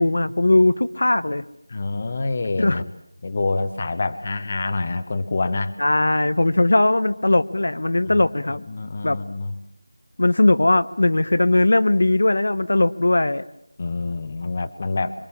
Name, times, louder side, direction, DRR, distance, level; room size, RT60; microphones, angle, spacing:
voice 1, 0.0-1.4 2.6-2.8 5.8-8.6 9.0-9.2 10.2-13.4, left 2 dB, 55° left, 11 dB, 1.1 m, -19 dB
voice 2, 1.7-2.9 3.2-5.7 8.1-8.3 8.7-9.5 13.8-15.3, left 3 dB, 20° left, 10 dB, 1.2 m, -26 dB
27.0 x 25.0 x 7.3 m, 0.74 s
figure-of-eight pair, 180°, 0 cm